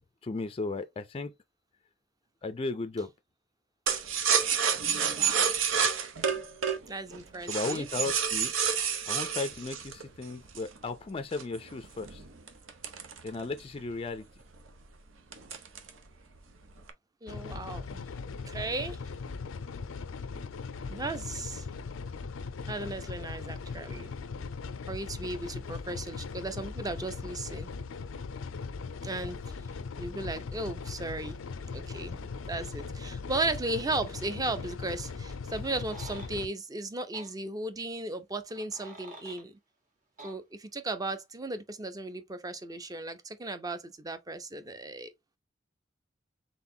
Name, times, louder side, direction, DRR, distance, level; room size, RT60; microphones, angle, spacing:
voice 1, 0.2-1.3 2.4-3.1 7.4-8.5 9.1-12.2 13.2-14.3, left 3 dB, 30° left, 0.4 m, -35 dB
sound 1, 3.9-10.8 11.3-13.8 14.1-14.2 14.5-14.9 15.3-16.0 16.3-16.9, right 7 dB, 85° right, 0.9 m, -29 dB
voice 2, 5.1-5.4 6.3-6.4 6.9-7.9 17.2-19.0 20.9-21.7 22.7-24.1 24.9-27.7 29.0-29.4 30.0-31.4 31.7-39.6 40.2-45.1, right 2 dB, 20° right, 0.6 m, -36 dB
sound 2, 17.3-36.5, left 4 dB, 90° left, 0.5 m, -39 dB
sound 3, 35.6-36.3 37.1-37.3 38.5-39.4 40.2-40.4, right 2 dB, 45° right, 1.8 m, -48 dB
4.0 x 3.7 x 2.7 m
head